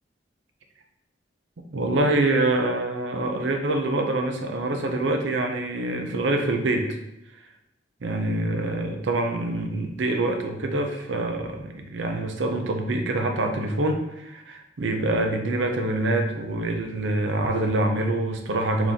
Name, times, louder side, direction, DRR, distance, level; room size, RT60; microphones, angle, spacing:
voice 1, 1.7-7.0 8.0-18.9, right 2 dB, 75° right, 4 dB, 0.6 m, -25 dB
4.1 x 3.0 x 3.5 m, 0.88 s
head